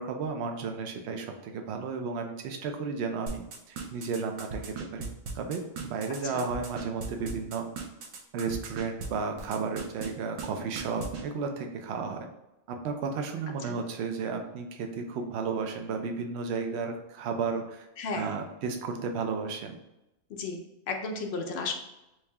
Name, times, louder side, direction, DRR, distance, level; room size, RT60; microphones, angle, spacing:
voice 1, 0.0-5.1 5.3-7.6 8.3-12.3 12.7-17.9 18.1-19.8, right 5 dB, 65° right, 4 dB, 0.7 m, -33 dB
sound 1, 3.3-9.1 9.4-10.1 10.4-10.5 10.8-11.2, right 5 dB, 85° right, 1.1 m, -37 dB
voice 2, 18.0-18.3 20.3-20.6 20.9-21.7, left 4 dB, 65° left, 3 dB, 0.7 m, -34 dB
3.2 x 2.7 x 3.4 m, 0.91 s
omnidirectional pair, 1.4 m